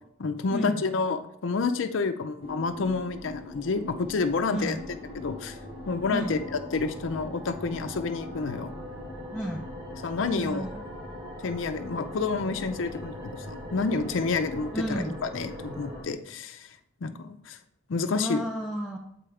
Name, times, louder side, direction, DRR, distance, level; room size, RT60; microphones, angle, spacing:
voice 1, 0.2-4.8 5.1-5.6 5.9-8.7 10.0-10.7 11.4-16.7 17.0-17.6 17.9-18.4, left 4 dB, 70° left, 8 dB, 0.5 m, -29 dB
sound 1, 2.4-16.0, left 1 dB, 25° right, 1.3 m, -40 dB
voice 2, 6.1-6.4 9.3-9.7 10.3-10.9 14.7-15.2 18.1-19.0, equal, ahead, -1 dB, 0.4 m, -32 dB
7.7 x 4.9 x 3.3 m, 0.75 s
head